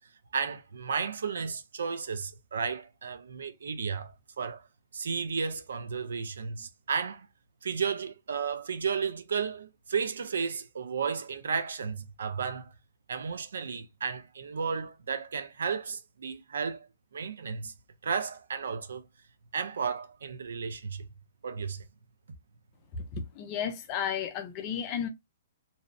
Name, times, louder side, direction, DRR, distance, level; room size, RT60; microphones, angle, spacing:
voice 1, 0.3-4.1 4.4-4.6 4.9-7.3 7.6-12.7 13.1-16.9 17.1-17.7 18.0-19.0 19.5-21.1 21.4-21.8, right 6 dB, 85° right, 0.5 m, -33 dB
voice 2, 22.9-25.1, left 8 dB, 25° left, 0.5 m, -33 dB
2.6 x 2.0 x 2.4 m
hypercardioid pair, 165°, 0 cm